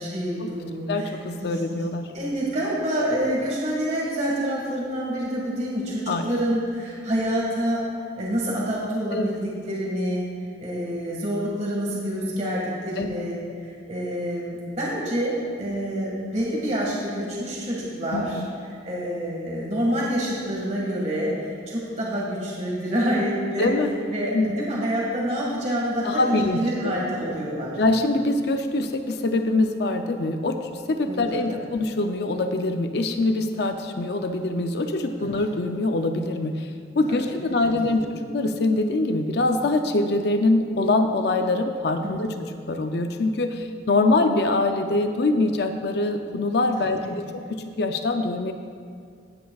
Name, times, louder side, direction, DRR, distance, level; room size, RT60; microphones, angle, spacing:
voice 1, 0.0-1.1 1.4-1.6 2.1-7.8 8.2-10.3 10.6-18.4 18.8-23.7 24.1-27.8 31.1-31.2 31.5-31.6 35.2-35.3 37.1-37.2 37.4-38.0 42.0-42.4 46.8-47.1, equal, 40° right, -5 dB, 1.8 m, -27 dB
voice 2, 0.9-2.1 6.1-6.3 9.1-9.3 13.0-13.1 18.1-18.5 23.6-23.9 24.3-24.5 26.0-27.0 27.8-42.3 42.7-48.5, left 2 dB, 60° left, 6 dB, 0.5 m, -24 dB
17.0 x 9.2 x 2.4 m, 2.2 s
head